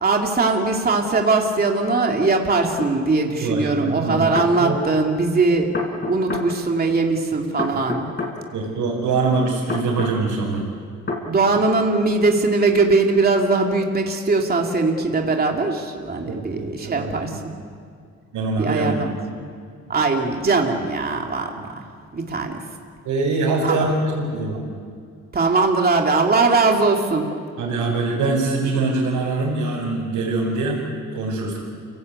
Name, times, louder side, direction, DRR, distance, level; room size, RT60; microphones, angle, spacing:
voice 1, 0.0-8.1 11.3-17.3 18.6-19.1 19.9-21.9 22.1-22.6 23.6-23.9 25.3-27.3, right 3 dB, 30° right, 1 dB, 2.9 m, -20 dB
sound 1, 2.8-2.9 4.1-4.5 5.7-6.5 7.6-8.3 9.7-10.2 11.1-11.2, left 3 dB, 35° left, 5.5 m, -27 dB
voice 2, 3.4-4.3 4.6-4.8 7.7-7.8 8.5-10.7 16.3-17.4 18.3-19.1 23.1-24.7 27.6-30.8 31.1-31.6, right 3 dB, 85° right, -5 dB, 5.2 m, -23 dB
29.5 x 18.0 x 8.4 m, 2.2 s
cardioid pair, 90°, 30 cm